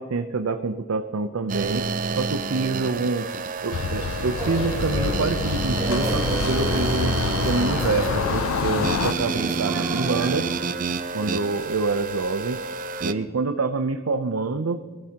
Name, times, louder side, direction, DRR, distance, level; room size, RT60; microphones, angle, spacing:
voice 1, 0.0-1.9 2.2-3.3 3.6-7.2 7.4-10.5 11.1-12.6 13.0-14.8, right 3 dB, 90° right, 7 dB, 0.6 m, -26 dB
sound 1, 1.5-13.1, right 4 dB, 40° right, 0.5 m, -29 dB
sound 2, 3.7-9.1, left 6 dB, 85° left, 0.4 m, -27 dB
sound 3, 4.4-10.4, right 1 dB, 15° right, 2.7 m, -33 dB
20.5 x 13.0 x 2.9 m, 1.5 s
head